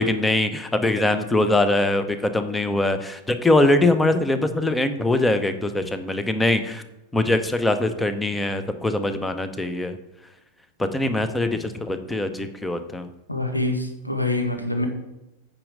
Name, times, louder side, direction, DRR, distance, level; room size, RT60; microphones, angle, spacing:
voice 1, 0.0-6.8 7.1-9.9 10.8-13.1, left 2 dB, 10° left, 9 dB, 0.8 m, -22 dB
voice 2, 13.3-14.9, left 2 dB, 85° left, 4 dB, 1.4 m, -25 dB
8.9 x 5.3 x 6.3 m, 0.93 s
figure-of-eight pair, 90°, 0 cm